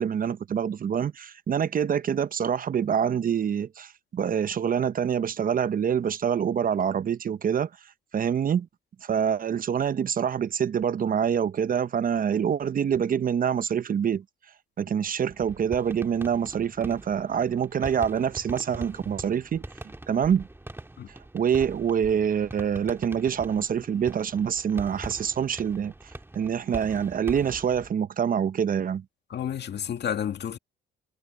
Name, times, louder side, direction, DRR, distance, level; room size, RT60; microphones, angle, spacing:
voice 1, 0.0-7.7 8.1-8.7 9.0-14.2 14.8-19.7 20.1-20.5 21.1-25.9 26.3-29.0, right 8 dB, 45° right, 0.7 m, -26 dB
sound 1, 15.3-27.9, right 2 dB, 10° right, 2.1 m, -42 dB
voice 2, 29.3-30.6, left 9 dB, 60° left, 2.1 m, -30 dB
cardioid pair, 90°, 20 cm